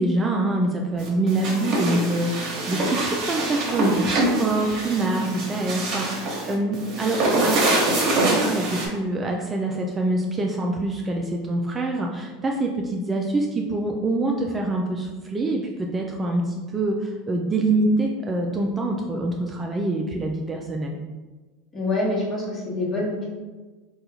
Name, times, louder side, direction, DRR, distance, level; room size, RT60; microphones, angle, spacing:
voice 1, 0.0-7.7 8.2-21.0, right 2 dB, 20° right, 1 dB, 0.3 m, -25 dB
sound 1, 1.0-8.9, right 2 dB, 50° right, 0.9 m, -25 dB
voice 2, 21.7-23.3, left 2 dB, 25° left, -4 dB, 1.1 m, -26 dB
3.6 x 2.3 x 2.8 m, 1.3 s
hypercardioid pair, 100°, 0 cm